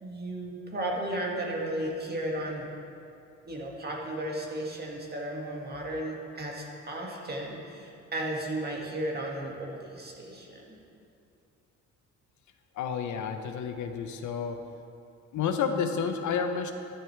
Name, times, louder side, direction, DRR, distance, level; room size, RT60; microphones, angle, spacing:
voice 1, 0.0-2.7 3.5-10.8, right 1 dB, 35° right, -1 dB, 2.0 m, -34 dB
voice 2, 12.8-14.6 15.3-16.7, left 6 dB, 75° left, 6 dB, 0.8 m, -30 dB
12.5 x 10.5 x 3.4 m, 2.6 s
cardioid pair, 90°, 30 cm